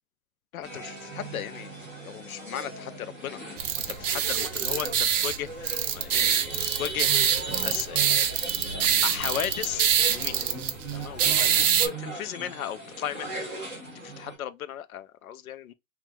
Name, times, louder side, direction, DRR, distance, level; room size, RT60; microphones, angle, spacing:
voice 1, 0.5-3.4 3.8-7.3 7.6-8.2 8.8-10.5 10.9-13.3 13.9-15.7, left 11 dB, 85° left, 0.5 m, -36 dB
sound 1, 0.6-14.3, right 2 dB, 10° left, 0.9 m, -38 dB
sound 2, 3.6-11.9, right 8 dB, 65° right, 0.6 m, -25 dB
3.2 x 2.3 x 2.3 m
hypercardioid pair, 180°, 41 cm